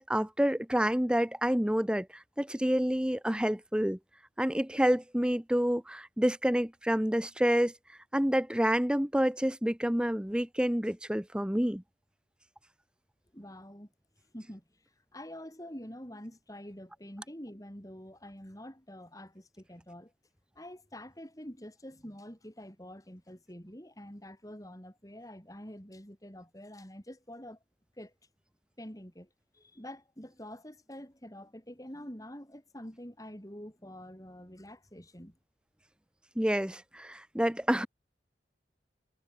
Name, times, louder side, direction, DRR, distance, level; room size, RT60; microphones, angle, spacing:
voice 1, 0.0-2.1 2.4-4.0 4.4-7.7 8.1-11.8 36.4-37.9, equal, 5° right, 0.8 m, -28 dB
voice 2, 13.3-13.9 14.3-14.6 15.1-20.1 20.5-27.6 28.0-28.1 28.8-29.3 29.5-35.4, equal, 20° left, 5.0 m, -46 dB
head